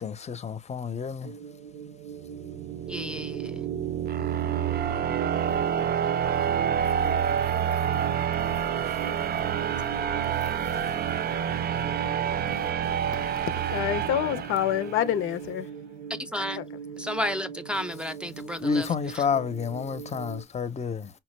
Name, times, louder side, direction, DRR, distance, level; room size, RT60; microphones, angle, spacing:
voice 1, 0.0-1.3 18.6-21.1, left 6 dB, 35° left, 0.7 m, -29 dB
sound 1, 1.2-20.4, right 7 dB, 85° right, 0.8 m, -42 dB
sound 2, 2.2-15.1, right 8 dB, 50° right, 0.5 m, -28 dB
voice 2, 2.9-3.5 16.1-16.6 17.0-19.3, equal, 5° right, 0.6 m, -32 dB
voice 3, 13.7-15.7 16.6-16.7, left 11 dB, 90° left, 0.6 m, -27 dB
5.6 x 2.1 x 3.2 m
cardioid pair, 90°, 20 cm